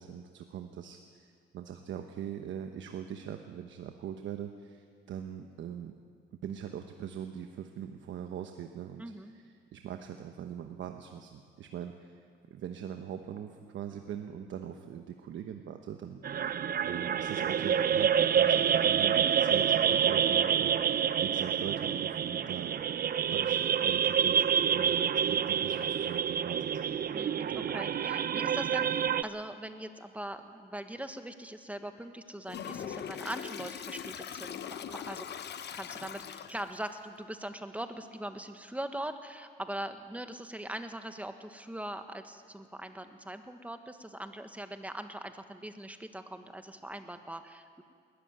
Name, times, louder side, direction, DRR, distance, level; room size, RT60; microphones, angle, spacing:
voice 1, 0.0-6.0 6.4-12.2 12.5-22.7 23.3-26.7 27.5-27.7, right 9 dB, 75° right, 5 dB, 1.1 m, -42 dB
voice 2, 9.0-9.3 27.1-35.3 35.7-47.8, right 1 dB, 5° right, 7 dB, 1.5 m, -41 dB
sound 1, 16.2-29.2, right 8 dB, 50° right, 0.7 m, -28 dB
Toilet flush, 32.5-36.8, left 8 dB, 60° left, 0.9 m, -41 dB
20.5 x 13.5 x 9.5 m, 2.1 s
cardioid pair, 90°, 20 cm